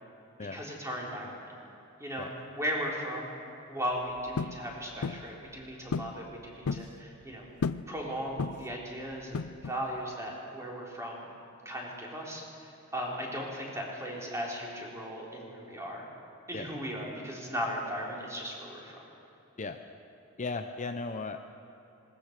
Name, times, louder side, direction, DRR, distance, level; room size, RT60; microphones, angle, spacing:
voice 1, 0.5-1.5 2.0-2.3 2.6-3.4 3.7-7.4 7.9-11.3 11.6-16.1 16.5-19.0, equal, 15° right, -3 dB, 3.9 m, -37 dB
sound 1, 4.4-4.6 5.0-5.3 5.9-6.2 6.4-6.9 7.6-7.9 8.4-8.8 9.3-9.8, left 4 dB, 90° left, 0.5 m, -33 dB
voice 2, 20.4-21.4, left 3 dB, 35° left, 6 dB, 0.7 m, -36 dB
20.0 x 19.5 x 6.7 m, 2.9 s
head